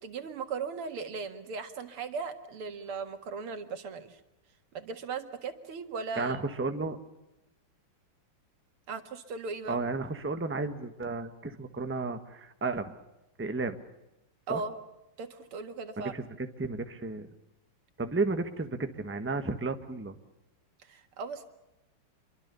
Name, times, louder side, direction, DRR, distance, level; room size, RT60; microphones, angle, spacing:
voice 1, 0.0-4.2 4.7-6.4 8.9-9.8 14.5-14.7 15.2-16.1 20.9-21.5, right 4 dB, 90° right, 8 dB, 2.7 m, -37 dB
voice 2, 6.2-7.0 9.7-12.9 13.4-13.8 14.5-14.6 16.0-17.3 18.0-20.2, right 3 dB, 5° right, 8 dB, 1.1 m, -33 dB
26.5 x 23.5 x 6.9 m, 0.95 s
omnidirectional pair, 2.3 m